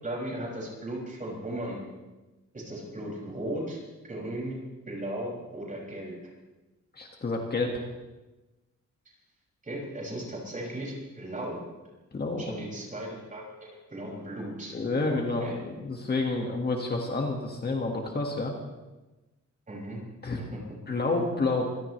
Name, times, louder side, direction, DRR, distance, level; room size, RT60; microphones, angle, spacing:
voice 1, 0.0-1.8 2.5-3.8 4.0-6.1 9.6-11.6 12.4-14.7 15.1-15.6 19.7-20.0 20.4-20.6, right 1 dB, 25° right, -3 dB, 6.4 m, -36 dB
voice 2, 7.0-7.8 12.1-12.5 14.7-18.5 20.2-20.4 20.9-21.7, left 3 dB, 35° left, 1 dB, 1.9 m, -29 dB
25.5 x 17.5 x 3.3 m, 1.1 s
wide cardioid pair, 150°, 30 cm